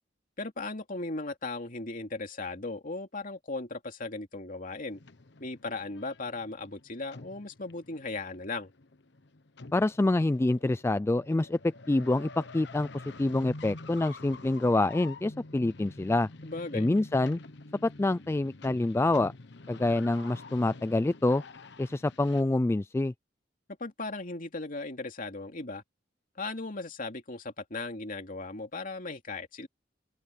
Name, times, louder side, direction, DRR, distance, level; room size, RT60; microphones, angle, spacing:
voice 1, 0.4-5.0 5.4-8.7 16.4-16.9 23.8-25.8 26.4-29.7, left 3 dB, 50° left, 2.7 m, -37 dB
sound 1, 4.9-22.4, left 3 dB, 65° left, 1.1 m, -48 dB
voice 2, 9.7-12.9 13.2-16.3 16.7-17.4 17.8-19.3 19.7-21.4 21.8-23.1, left 2 dB, 15° left, 0.3 m, -26 dB
open air
head